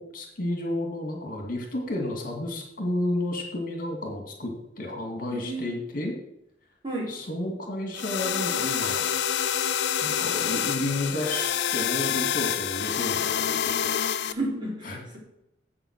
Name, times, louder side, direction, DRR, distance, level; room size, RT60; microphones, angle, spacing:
voice 1, 0.0-6.1 7.1-9.1 10.0-14.0 14.9-15.2, left 1 dB, 50° left, 2 dB, 2.2 m, -31 dB
voice 2, 5.3-5.7 6.8-7.2 14.2-15.2, right 2 dB, 25° right, -3 dB, 3.7 m, -32 dB
sound 1, 7.9-14.3, left 9 dB, 70° left, 0.5 m, -27 dB
8.0 x 7.7 x 6.5 m, 0.82 s
head